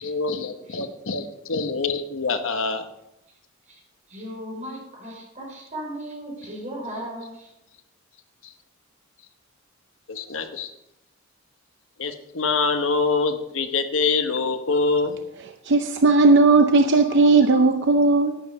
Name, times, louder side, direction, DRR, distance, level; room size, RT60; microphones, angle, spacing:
voice 1, 0.0-2.9 8.4-8.5 10.1-10.7 12.0-15.2 17.5-17.6, left 4 dB, 70° left, 1.1 m, -25 dB
voice 2, 4.1-7.5, right 1 dB, 35° right, 5.7 m, -36 dB
voice 3, 15.7-18.4, right 3 dB, 60° right, 0.7 m, -16 dB
11.0 x 9.6 x 5.5 m
head